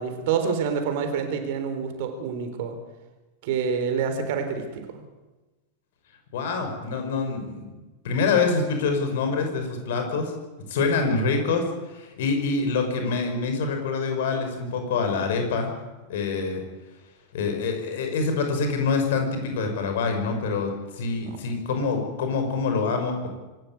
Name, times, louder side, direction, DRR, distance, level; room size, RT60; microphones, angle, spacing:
voice 1, 0.0-2.8 3.4-4.8 21.2-21.4, right 6 dB, 50° right, 7 dB, 4.1 m, -27 dB
voice 2, 6.3-7.7 8.0-10.3 10.7-11.6 11.9-15.7 16.1-16.6 17.3-23.3, left 4 dB, 55° left, 5 dB, 5.9 m, -25 dB
25.0 x 14.5 x 9.5 m, 1.2 s
figure-of-eight pair, 90°, 0 cm